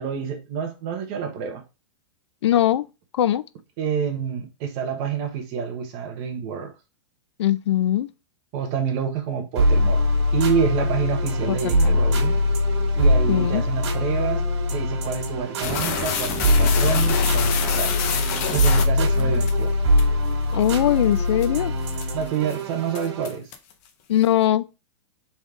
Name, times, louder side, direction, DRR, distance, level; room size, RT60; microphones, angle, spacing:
voice 1, 0.0-1.6 3.8-6.7 8.5-10.0 10.3-12.3 12.9-14.4 14.7-18.0 18.5-19.7 22.1-23.5, right 7 dB, 30° right, 1.0 m, -28 dB
voice 2, 2.4-2.9 3.1-3.4 7.4-8.1 11.5-12.0 13.3-13.6 19.2-19.5 20.5-21.7 24.1-24.6, left 12 dB, 70° left, 0.4 m, -21 dB
sound 1, 9.5-23.4, left 1 dB, 65° right, 1.7 m, -22 dB
sound 2, 15.6-19.5 20.0-20.1 20.6-20.8 21.2-21.5 21.9-22.2 22.5-22.6 23.0-23.7, left 7 dB, 35° left, 0.7 m, -27 dB
4.1 x 3.4 x 3.6 m
supercardioid pair, 170°, 15 cm